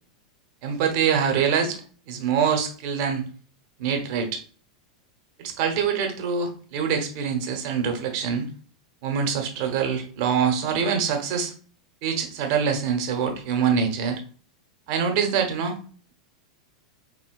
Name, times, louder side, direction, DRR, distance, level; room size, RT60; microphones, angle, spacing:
voice 1, 0.6-1.8 2.1-3.2 3.8-4.4 5.4-8.5 9.0-11.5 12.0-14.2 14.9-15.8, right 7 dB, 55° right, 4 dB, 1.0 m, -24 dB
4.7 x 2.9 x 2.5 m, 0.42 s
hypercardioid pair, 95°, 3 cm